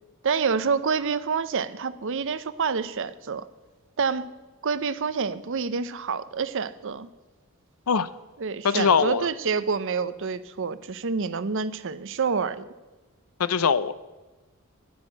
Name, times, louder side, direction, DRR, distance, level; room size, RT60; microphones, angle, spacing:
voice 1, 0.2-3.5 4.0-4.3 4.6-7.1 8.4-12.6, right 5 dB, 60° right, 15 dB, 0.6 m, -27 dB
voice 2, 8.6-9.3 13.4-13.9, left 6 dB, 80° left, 16 dB, 0.6 m, -22 dB
11.0 x 9.4 x 7.4 m, 1.1 s
head